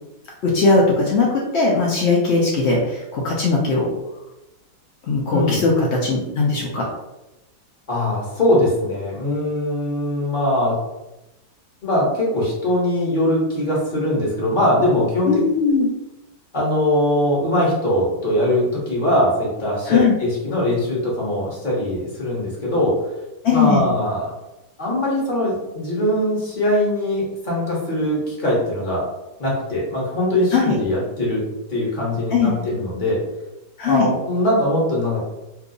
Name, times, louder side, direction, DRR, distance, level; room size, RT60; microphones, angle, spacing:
voice 1, 0.4-3.9 5.0-6.9 15.3-15.9 19.9-20.1 23.4-23.9 30.5-30.8 32.3-32.5 33.8-34.1, left 4 dB, 75° left, -2 dB, 0.6 m, -19 dB
voice 2, 5.3-5.6 7.9-10.8 11.8-15.4 16.5-23.0 23.5-24.3 24.8-29.0 29.4-31.4 31.7-33.2 33.8-35.3, left 1 dB, 35° left, -4 dB, 1.0 m, -21 dB
2.8 x 2.3 x 3.7 m, 0.96 s
omnidirectional pair, 1.8 m